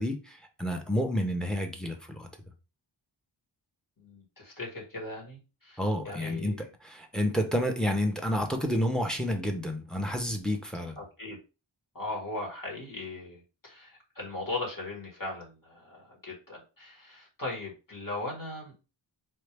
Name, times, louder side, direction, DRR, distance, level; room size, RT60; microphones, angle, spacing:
voice 1, 0.0-2.3 5.8-6.5 6.8-11.0, equal, ahead, 5 dB, 0.8 m, -30 dB
voice 2, 4.0-6.6 11.0-11.4 11.9-18.7, left 2 dB, 45° left, -2 dB, 2.0 m, -39 dB
4.3 x 2.7 x 3.3 m, 0.31 s
wide cardioid pair, 70°, 47 cm